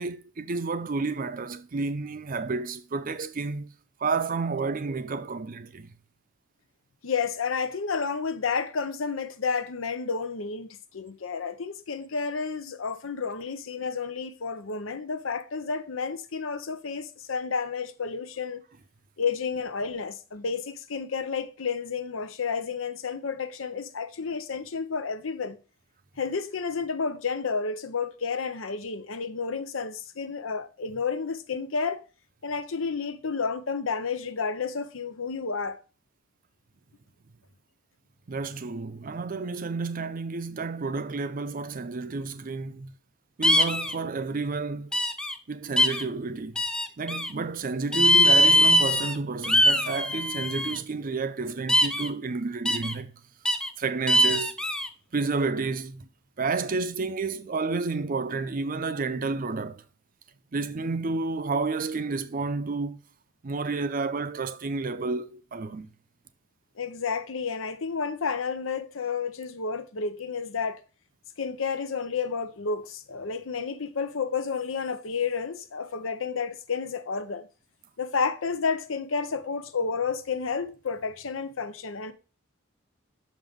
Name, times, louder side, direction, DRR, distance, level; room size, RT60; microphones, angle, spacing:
voice 1, 0.0-3.7 4.0-5.9 38.3-42.9 43.4-44.9 45.5-46.6 47.0-53.1 53.8-54.6 55.1-56.1 56.4-59.8 60.5-63.0 63.4-65.9, right 4 dB, 45° right, 0.5 m, -30 dB
voice 2, 7.0-18.6 19.2-25.6 26.2-32.0 32.4-35.8 66.8-70.8 71.4-77.5 78.0-82.1, left 5 dB, 85° left, 0.7 m, -31 dB
sound 1, 43.4-43.9 44.9-45.3 45.8-46.0 46.6-47.3 47.9-49.1 49.4-50.8 51.7-52.1 52.7-52.9 53.5-53.7 54.1-54.9, equal, 5° left, 0.4 m, -22 dB
6.4 x 5.3 x 3.5 m
head